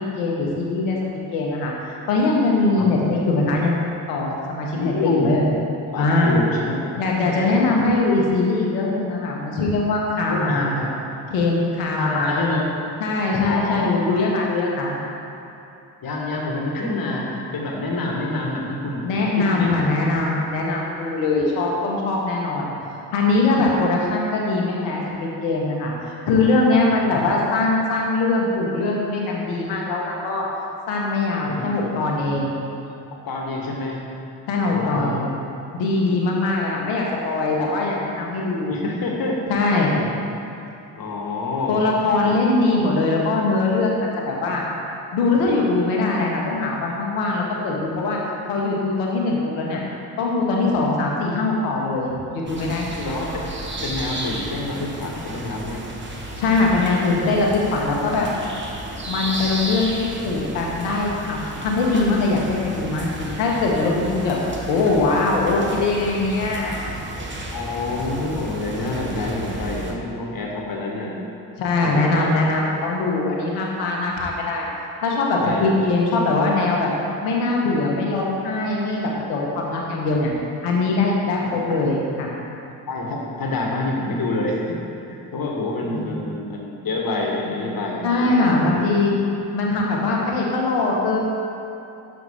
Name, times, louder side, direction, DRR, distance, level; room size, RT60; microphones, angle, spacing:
voice 1, 0.2-1.0 1.3-5.4 6.0-6.3 7.0-10.7 11.3-12.3 13.0-14.9 19.0-22.7 23.1-25.9 26.3-30.5 30.9-32.5 34.5-35.2 35.7-38.8 39.5-39.9 41.7-44.6 45.1-48.2 48.5-49.8 50.2-53.1 56.4-58.3 59.1-64.4 64.7-66.8 71.6-74.7 75.0-76.9 77.2-80.3 80.6-82.3 85.9-86.2 88.0-89.1 89.5-91.2, left 3 dB, 85° left, -2 dB, 1.3 m, -21 dB
voice 2, 4.7-5.5 5.9-6.9 7.3-7.6 10.3-10.9 12.0-12.7 13.4-14.1 16.0-19.0 19.4-19.8 22.6-22.9 26.8-27.0 31.5-32.4 33.3-34.0 34.6-35.4 38.7-39.4 40.0-40.1 41.0-41.8 42.3-42.4 53.0-53.5 53.8-55.8 67.5-71.2 71.8-72.4 75.3-75.7 80.0-80.1 81.0-81.1 81.4-81.7 82.9-84.8 85.1-88.4 88.6-88.9, left 2 dB, 55° left, -1 dB, 1.7 m, -27 dB
sound 1, 52.5-69.9, right 1 dB, 25° right, 1.3 m, -33 dB
6.3 x 5.8 x 5.7 m, 2.8 s
hypercardioid pair, 50°, 41 cm